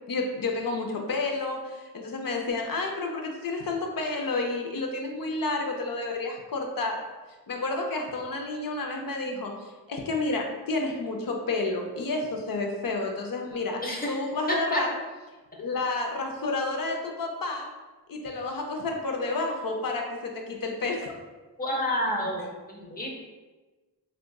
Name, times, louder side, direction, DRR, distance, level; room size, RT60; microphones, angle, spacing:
voice 1, 0.1-7.0 7.5-13.8 14.1-14.9 15.6-17.7 18.1-21.3, left 3 dB, 55° left, 2 dB, 0.6 m, -30 dB
voice 2, 14.5-14.8 21.6-23.1, equal, 20° left, -1 dB, 0.8 m, -29 dB
4.6 x 2.4 x 2.3 m, 1.2 s
wide cardioid pair, 75°, 40 cm